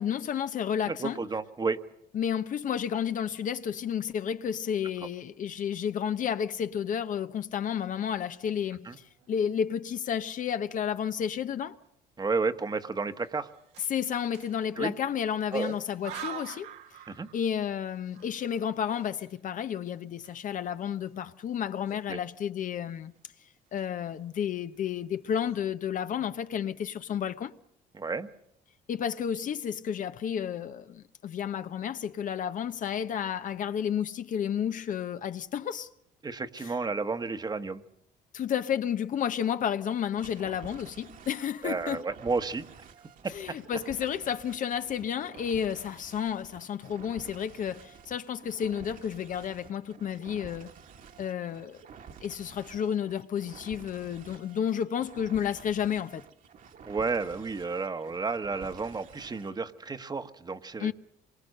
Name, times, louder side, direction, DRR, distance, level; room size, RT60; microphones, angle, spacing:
voice 1, 0.0-1.2 2.1-11.8 13.9-16.7 17.3-23.1 23.7-27.5 28.9-35.9 36.6-36.7 38.3-42.0 43.3-50.7 51.2-51.8 52.2-56.2 60.8-60.9, left 8 dB, 50° left, 0.9 m, -31 dB
voice 2, 0.9-1.8 8.8-9.0 12.2-13.5 14.8-14.9 15.5-15.7 17.1-17.3 22.1-22.2 27.9-28.3 36.2-37.8 41.6-42.7 43.2-43.3 56.9-60.9, right 4 dB, 25° right, 1.2 m, -31 dB
sound 1, 9.1-9.6 10.1-10.2 10.5-11.2 11.6-11.8 12.8-15.1 15.5-17.7 18.0-20.8 21.1-21.2 21.8-22.5 22.8-23.2 23.6-24.2 24.7-24.8 25.1-25.6, right 9 dB, 90° right, 2.0 m, -48 dB
sound 2, 40.2-59.6, right 6 dB, 55° right, 1.8 m, -51 dB
26.5 x 23.5 x 6.6 m
cardioid pair, 110°, 17 cm